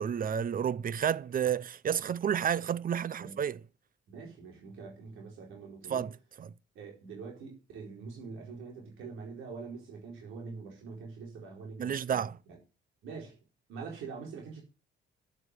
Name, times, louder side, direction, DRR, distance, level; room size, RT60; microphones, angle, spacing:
voice 1, 0.0-3.6 5.9-6.5 11.8-12.4, right 8 dB, 45° right, 0.7 m, -31 dB
voice 2, 4.1-6.1 6.7-12.2 13.0-13.4 13.7-14.6, right 5 dB, 90° right, 4.4 m, -44 dB
10.5 x 7.4 x 8.1 m
cardioid pair, 90°, 20 cm